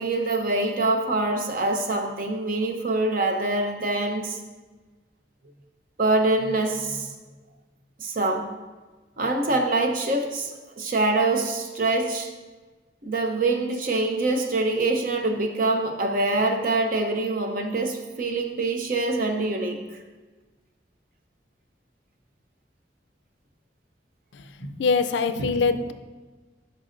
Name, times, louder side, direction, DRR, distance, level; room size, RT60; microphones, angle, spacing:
voice 1, 0.0-4.4 6.0-7.1 8.0-8.5 9.2-12.3 13.0-19.8 24.6-24.7 25.4-25.5, right 2 dB, 50° right, 5 dB, 0.6 m, -25 dB
voice 2, 24.6-25.9, left 4 dB, 75° left, 10 dB, 0.4 m, -23 dB
11.0 x 5.3 x 2.5 m, 1.3 s
head